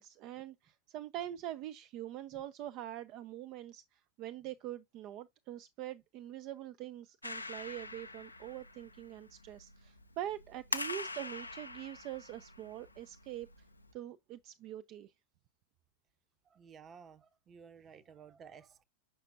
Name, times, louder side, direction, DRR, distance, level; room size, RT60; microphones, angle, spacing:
voice 1, 0.0-13.5 13.9-15.1, right 12 dB, 40° right, 0.5 m, -44 dB
Clapping, 7.2-13.9, left 2 dB, 85° left, 0.6 m, -44 dB
voice 2, 16.5-18.8, right 6 dB, 25° right, 0.9 m, -55 dB
7.4 x 5.9 x 2.7 m
figure-of-eight pair, 90°, 0 cm